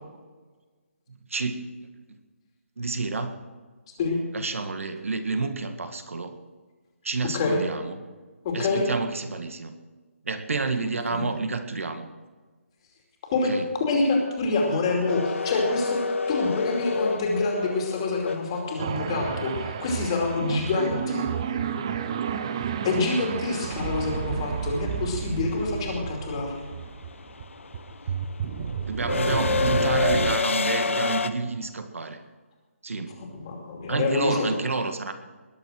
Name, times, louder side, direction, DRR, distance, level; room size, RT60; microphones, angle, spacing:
voice 1, 1.3-1.7 2.8-3.4 4.3-6.4 7.0-8.0 8.5-9.7 10.3-12.1 13.5-13.7 28.9-32.2 32.8-33.2 33.9-35.1, right 3 dB, 70° right, 8 dB, 1.8 m, -29 dB
voice 2, 8.4-8.9 11.1-11.3 13.2-13.5 13.8-21.3 22.8-26.6 33.2-34.6, left 3 dB, 20° left, 1 dB, 2.6 m, -26 dB
sound 1, 15.1-19.1 21.5-21.6 22.9-23.2 23.5-31.3, left 4 dB, 60° left, 1.0 m, -28 dB
sound 2, 18.8-30.4, right 7 dB, 20° right, 0.6 m, -31 dB
20.5 x 7.6 x 6.2 m, 1.3 s
hypercardioid pair, 175°, 8 cm